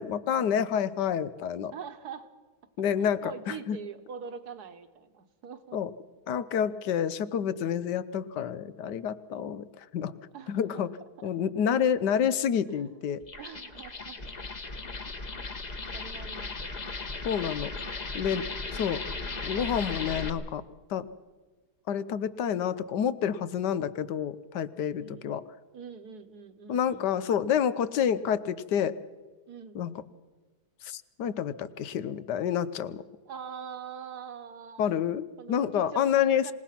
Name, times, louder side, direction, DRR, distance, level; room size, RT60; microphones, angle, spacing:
voice 1, 0.0-1.7 2.8-3.8 5.7-5.9 6.3-10.1 10.5-10.9 11.2-13.2 17.2-17.7 18.1-18.5 18.7-19.0 19.4-20.6 20.9-21.0 21.9-25.4 26.7-28.9 29.7-29.9 30.8-33.0 34.8-35.2 35.5-36.5, left 8 dB, 80° left, 15 dB, 1.4 m, -28 dB
voice 2, 1.7-2.3 3.0-5.8 10.3-10.9 11.2-11.3 12.7-13.0 13.4-14.2 15.1-15.5 15.9-17.2 25.0-25.4 25.7-27.1 29.5-29.8 33.3-34.9 35.4-36.5, right 6 dB, 70° right, 9 dB, 1.7 m, -44 dB
sound 1, 13.2-20.3, left 3 dB, 30° left, 1.1 m, -37 dB
27.0 x 18.0 x 5.9 m, 1.3 s
omnidirectional pair, 1.8 m